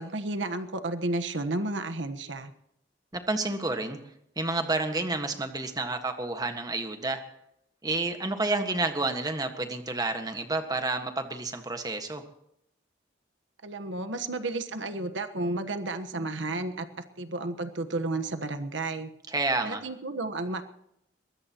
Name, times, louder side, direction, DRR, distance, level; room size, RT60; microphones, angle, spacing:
voice 1, 0.0-2.5 13.6-16.9 17.2-19.1 19.6-20.6, right 2 dB, 85° right, 7 dB, 1.3 m, -32 dB
voice 2, 3.1-4.0 4.4-7.2 7.8-12.2 19.3-19.8, right 2 dB, 20° right, 6 dB, 1.6 m, -30 dB
22.5 x 20.5 x 3.0 m, 0.76 s
head